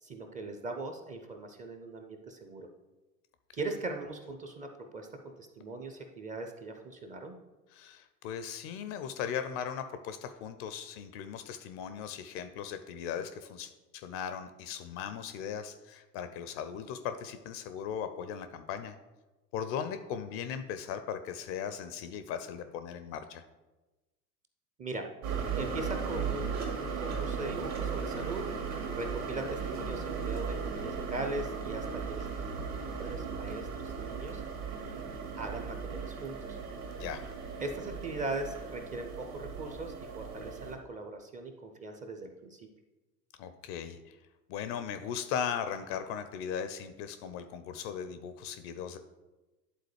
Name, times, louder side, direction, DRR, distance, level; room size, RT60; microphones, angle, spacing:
voice 1, 0.0-2.7 3.5-4.7 4.9-7.4 24.8-25.0 25.6-28.5 28.9-32.3 33.0-34.4 35.4-36.6 37.6-42.7, right 2 dB, 15° right, 5 dB, 0.5 m, -40 dB
voice 2, 7.7-18.9 19.5-23.4 37.0-37.3 43.4-44.2 44.5-49.0, left 8 dB, 35° left, 10 dB, 0.4 m, -38 dB
sound 1, 25.2-40.7, right 5 dB, 65° right, 1.9 m, -37 dB
11.0 x 3.8 x 3.2 m, 1.1 s
figure-of-eight pair, 85°, 49 cm